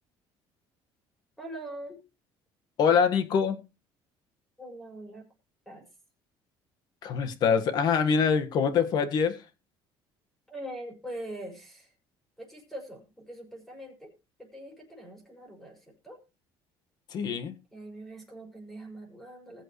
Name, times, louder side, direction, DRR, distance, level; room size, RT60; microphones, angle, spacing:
voice 1, 1.4-2.0 4.6-5.3 5.7-5.8 10.5-11.9 12.4-14.1 14.4-16.2 17.7-19.6, right 1 dB, 5° left, 2 dB, 5.9 m, -42 dB
voice 2, 2.8-3.6 7.0-9.4 17.1-17.5, left 6 dB, 50° left, 9 dB, 1.7 m, -24 dB
20.5 x 7.7 x 3.2 m, 0.28 s
cardioid pair, 155°, 9 cm